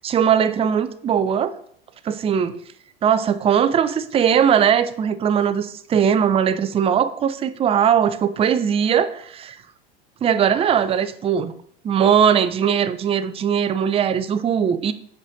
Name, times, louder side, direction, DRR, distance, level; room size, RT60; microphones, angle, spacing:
voice 1, 0.0-1.5 2.1-2.5 3.0-9.6 10.2-11.5 11.8-14.9, right 8 dB, 20° right, 12 dB, 0.4 m, -19 dB
6.3 x 4.9 x 4.1 m, 0.65 s
hypercardioid pair, 85°, 30 cm